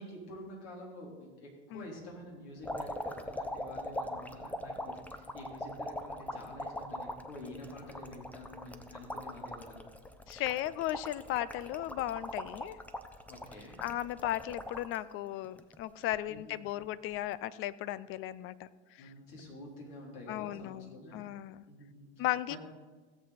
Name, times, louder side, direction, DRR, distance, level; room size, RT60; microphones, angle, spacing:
voice 1, 0.0-9.9 13.3-13.8 16.3-16.6 19.0-21.2 21.7-22.6, left 1 dB, 60° left, -2 dB, 3.9 m, -48 dB
sound 1, 2.6-15.0 15.4-16.2 17.2-17.3, left 1 dB, 5° left, 0.8 m, -41 dB
voice 2, 10.3-12.8 13.8-18.7 19.0-19.1 20.3-21.7 22.2-22.6, left 14 dB, 40° left, 18 dB, 0.5 m, -36 dB
16.5 x 7.5 x 4.3 m, 1.4 s
hypercardioid pair, 90°, 33 cm